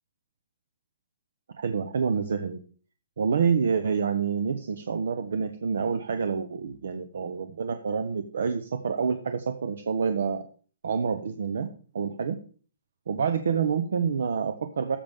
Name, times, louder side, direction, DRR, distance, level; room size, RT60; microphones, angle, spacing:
voice 1, 1.6-2.6 3.2-10.4 10.8-11.7 11.9-12.4 13.1-15.0, right 6 dB, 70° right, 8 dB, 1.0 m, -27 dB
13.5 x 7.1 x 3.7 m, 0.42 s
hypercardioid pair, 165°, 0 cm